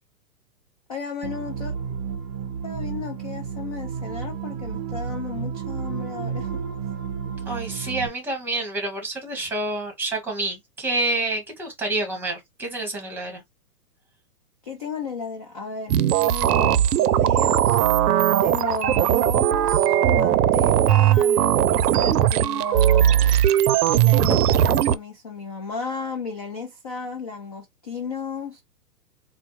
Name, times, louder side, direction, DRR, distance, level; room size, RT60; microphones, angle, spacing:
voice 1, 0.9-1.7 2.6-6.5 14.6-17.8 18.4-23.4 24.0-28.6, left 5 dB, 25° left, 0.3 m, -34 dB
sound 1, 1.2-8.1, right 7 dB, 25° right, 0.5 m, -31 dB
voice 2, 7.4-13.4, right 2 dB, 5° right, 1.2 m, -28 dB
sound 2, 15.9-24.9, right 11 dB, 75° right, 0.6 m, -19 dB
4.2 x 2.2 x 3.0 m
hypercardioid pair, 145°, 47 cm